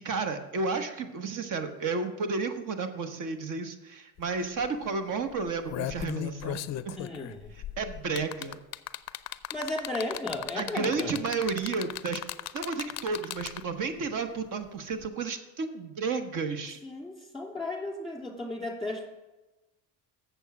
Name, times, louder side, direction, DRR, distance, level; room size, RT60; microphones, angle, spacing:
voice 1, 0.0-7.0 7.5-8.6 10.5-12.2 12.5-16.8, right 4 dB, 50° right, 8 dB, 1.3 m, -32 dB
sound 1, 4.2-4.3 4.6-4.8 5.4-13.8 15.0-15.1, left 13 dB, 45° left, 0.4 m, -37 dB
voice 2, 7.0-7.5 9.5-11.2 16.8-19.1, left 2 dB, ahead, 0 dB, 2.8 m, -35 dB
8.2 x 7.0 x 6.0 m, 1.0 s
supercardioid pair, 95°, 39 cm